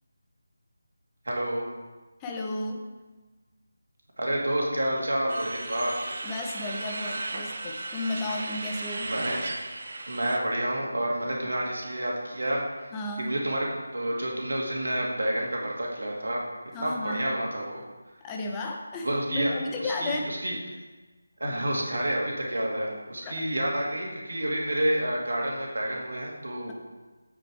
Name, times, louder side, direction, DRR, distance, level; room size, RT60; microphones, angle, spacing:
voice 1, 1.2-1.6 4.2-5.9 9.0-9.4 10.1-12.9 13.2-16.4 16.8-17.8 19.0-19.5 19.8-20.6 21.4-26.7, right 1 dB, 65° right, -2 dB, 2.3 m, -29 dB
voice 2, 2.2-2.9 6.2-9.1 12.9-13.3 16.7-17.2 18.2-20.3 23.2-23.3, left 2 dB, 15° left, 1 dB, 0.9 m, -33 dB
sound 1, 5.3-10.4, right 2 dB, 45° right, 0.9 m, -36 dB
7.7 x 6.4 x 4.7 m, 1.2 s
figure-of-eight pair, 160°, 0 cm